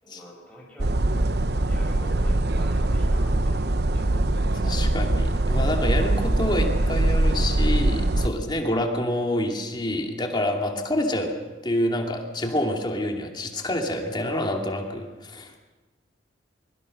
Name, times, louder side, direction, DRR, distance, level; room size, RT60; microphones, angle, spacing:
voice 1, 0.0-1.3 1.6-4.2, equal, 5° left, -4 dB, 7.2 m, -46 dB
sound 1, 0.8-8.3, right 1 dB, 60° right, 0.9 m, -22 dB
voice 2, 4.6-11.4 11.6-15.6, left 1 dB, 25° left, 2 dB, 2.6 m, -27 dB
23.0 x 23.0 x 6.5 m, 1.2 s
head